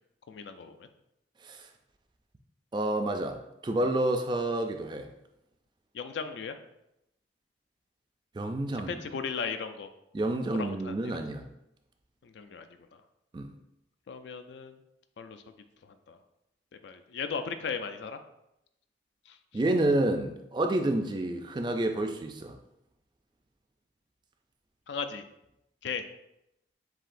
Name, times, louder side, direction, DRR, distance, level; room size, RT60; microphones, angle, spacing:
voice 1, 0.3-0.9 5.9-6.6 8.7-9.9 10.6-11.0 12.2-12.7 14.1-14.8 15.2-15.4 16.1-16.2 16.8-18.2 19.3-19.4 24.9-25.2 25.8-26.1, left 5 dB, 75° left, 8 dB, 0.4 m, -36 dB
voice 2, 2.7-3.4 3.6-5.1 8.3-9.0 10.1-11.5 13.3-13.5 19.5-22.5, right 1 dB, 25° right, 5 dB, 0.3 m, -29 dB
7.4 x 2.7 x 2.5 m, 0.84 s
head